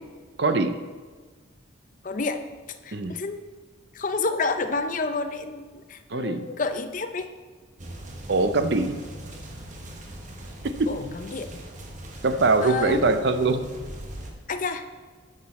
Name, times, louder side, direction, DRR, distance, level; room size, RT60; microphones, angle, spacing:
voice 1, 0.4-0.8 2.9-3.2 6.1-6.5 8.3-9.0 10.6-10.9 12.2-13.6, right 3 dB, 55° right, 10 dB, 0.5 m, -22 dB
voice 2, 2.0-2.4 2.8-3.4 3.9-7.3 10.9-11.6 12.6-13.0 14.5-14.8, left 3 dB, 40° left, 8 dB, 0.5 m, -29 dB
sound 1, 7.8-14.3, right 1 dB, 35° right, 1.0 m, -40 dB
10.5 x 6.8 x 4.2 m, 1.4 s
head